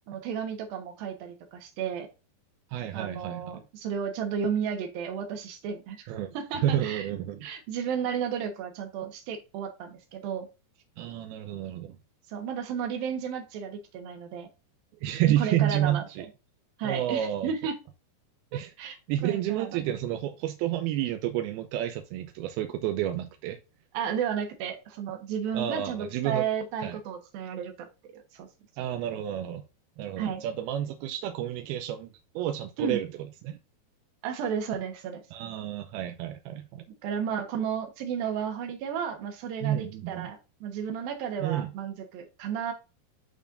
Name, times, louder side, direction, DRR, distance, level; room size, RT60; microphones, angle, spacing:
voice 1, 0.1-2.1 2.9-7.1 7.4-10.5 12.3-14.5 15.3-16.1 16.8-17.8 18.5-19.0 19.2-19.9 23.9-27.9 28.1-28.5 30.2-30.4 32.8-33.0 34.2-35.2 37.0-42.7, right 7 dB, 65° right, 2.8 m, -33 dB
voice 2, 2.7-3.4 6.1-7.5 11.0-12.0 15.0-16.3 16.8-17.5 18.5-23.6 25.5-26.5 26.8-27.0 28.8-29.6 30.0-32.1 32.4-33.1 33.4-33.6 35.3-36.8 39.6-40.3 41.4-41.7, right 12 dB, 80° right, 2.4 m, -30 dB
11.0 x 4.3 x 2.5 m
omnidirectional pair, 4.8 m